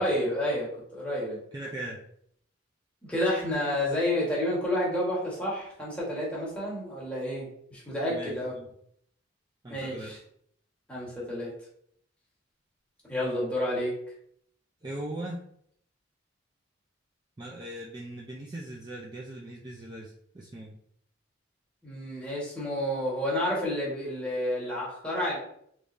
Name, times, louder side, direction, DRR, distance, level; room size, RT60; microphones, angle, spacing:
voice 1, 0.0-1.4 3.1-8.5 9.7-10.2 10.9-11.5 13.1-14.0 21.8-25.4, left 1 dB, 5° left, -6 dB, 1.3 m, -30 dB
voice 2, 1.5-2.0 8.1-8.7 9.6-10.1 14.8-15.4 17.4-20.7, right 1 dB, 20° right, -3 dB, 0.4 m, -39 dB
3.6 x 3.1 x 2.6 m, 0.67 s
head